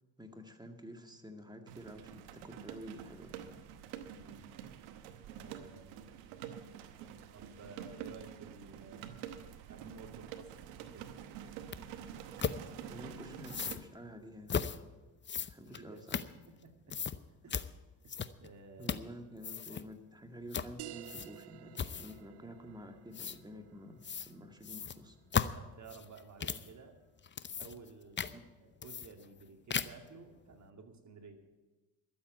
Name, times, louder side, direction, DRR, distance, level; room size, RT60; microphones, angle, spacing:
voice 1, 0.2-3.6 12.9-14.7 15.5-16.0 18.8-25.2 28.2-28.4, equal, 10° right, 4 dB, 2.0 m, -50 dB
sound 1, 1.7-13.8, right 9 dB, 90° right, 1.0 m, -47 dB
voice 2, 4.1-4.5 5.4-6.0 7.3-10.5 10.8-11.1 15.6-16.0 16.5-17.0 17.4-17.6 18.0-18.9 25.5-27.0 27.6-31.4, right 4 dB, 40° right, 4 dB, 2.4 m, -54 dB
sound 2, 11.7-11.8 12.4-12.6 13.4-13.8 14.5-14.8 15.2-16.6 16.9-17.2 17.5-17.7 18.1-18.5 18.8-19.1 19.4-19.8 20.5-20.7 21.0-21.4 21.7-22.2 23.1-23.4 24.0-24.3 24.6-26.7 27.2-27.9 28.2-28.3 28.8-29.4 29.7-30.1, left 7 dB, 25° left, 0.7 m, -36 dB
sound 3, 20.8-25.9, right 17 dB, 70° right, 0.6 m, -53 dB
12.5 x 7.8 x 9.3 m, 1.2 s
supercardioid pair, 65°, 42 cm